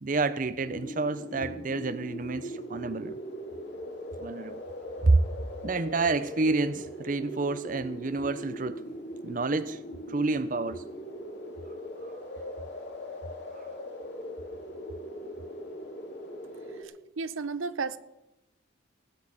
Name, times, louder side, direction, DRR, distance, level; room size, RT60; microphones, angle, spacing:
voice 1, 0.0-3.2 4.2-4.6 5.0-5.2 5.6-8.8 9.2-9.8 10.1-10.8, right 3 dB, 40° right, 0.6 m, -28 dB
sound 1, 0.6-16.8, equal, 55° left, 2.9 m, -40 dB
voice 2, 16.5-18.0, right 4 dB, 90° right, 0.7 m, -34 dB
18.0 x 6.3 x 8.7 m
head